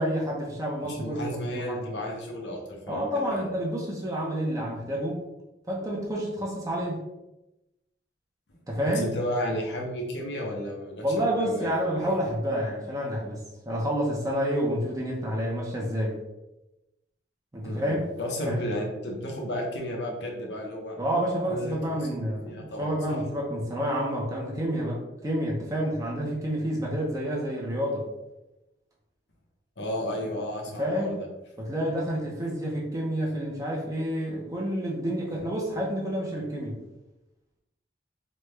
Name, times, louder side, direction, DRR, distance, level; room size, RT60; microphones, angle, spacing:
voice 1, 0.0-1.2 1.5-1.9 2.9-5.2 5.7-7.0 8.7-9.1 11.0-16.2 17.5-18.0 18.4-18.6 21.0-28.1 30.8-31.2 31.6-36.8, equal, 20° right, -3 dB, 0.5 m, -29 dB
voice 2, 0.8-3.5 8.9-12.2 17.6-21.0 21.5-23.2 29.8-31.3, equal, 80° left, 0 dB, 0.7 m, -33 dB
3.1 x 2.3 x 3.2 m, 0.95 s
head